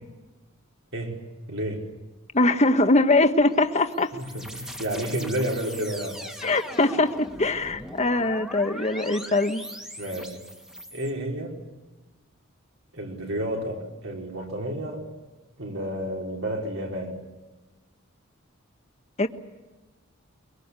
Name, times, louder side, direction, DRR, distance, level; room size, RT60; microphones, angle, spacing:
voice 1, 1.5-1.9 4.1-6.3 10.0-10.4 10.9-11.6 12.9-15.1 15.6-17.2, right 1 dB, 70° right, 0 dB, 5.1 m, -31 dB
voice 2, 2.3-4.1 6.4-9.6 19.2-19.3, left 2 dB, 35° left, 8 dB, 1.4 m, -22 dB
sound 1, 3.5-11.1, equal, 5° right, 2.0 m, -40 dB
24.0 x 23.5 x 8.4 m, 1.1 s
head